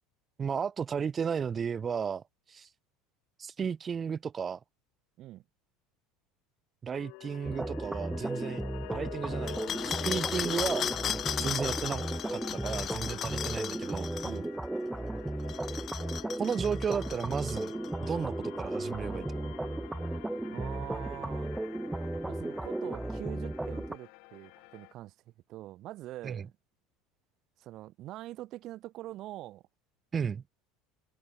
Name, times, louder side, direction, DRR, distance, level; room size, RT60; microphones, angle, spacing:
voice 1, 0.4-2.2 2.5-2.7 3.4-4.6 6.8-8.6 8.9-10.9 11.4-12.0 12.3-14.1 16.4-17.7 18.0-19.5 26.2-26.4 30.1-30.4, right 6 dB, 30° right, 1.0 m, -34 dB
sound 1, 6.9-24.9, left 34 dB, 65° left, 7.2 m, -48 dB
sound 2, 7.4-24.0, right 2 dB, 10° right, 0.9 m, -35 dB
sound 3, 9.5-14.4 15.4-17.9, left 10 dB, 45° left, 2.0 m, -36 dB
voice 2, 20.5-21.6 22.2-25.1 25.5-26.5 27.6-29.6, right 15 dB, 55° right, 3.1 m, -44 dB
hypercardioid pair, 75°, 0 cm